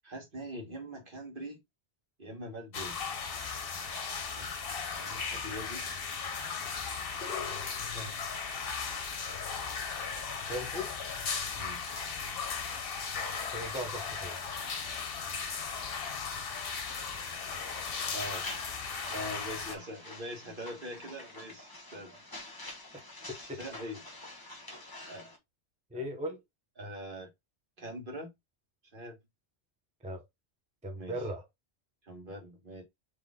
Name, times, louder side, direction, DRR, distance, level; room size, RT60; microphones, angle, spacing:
voice 1, 0.0-1.6 2.2-3.0 4.3-4.6 5.0-5.9 7.9-8.2 11.5-11.8 18.1-18.4 19.1-22.2 23.5-24.0 25.1-25.3 25.9-26.1 26.8-27.3 27.8-28.3 28.9-29.2 31.0-31.2 32.0-32.8, equal, 50° right, 1.6 m, -42 dB
sound 1, 2.7-19.8, left 5 dB, 60° left, 1.0 m, -36 dB
voice 2, 10.5-10.9 13.5-14.4 22.9-23.0 23.3-23.6 25.9-26.4 30.0-30.2 30.8-31.4, equal, 5° right, 0.7 m, -38 dB
sound 2, 16.9-25.4, left 2 dB, 20° left, 1.2 m, -47 dB
4.0 x 3.3 x 3.5 m
omnidirectional pair, 1.2 m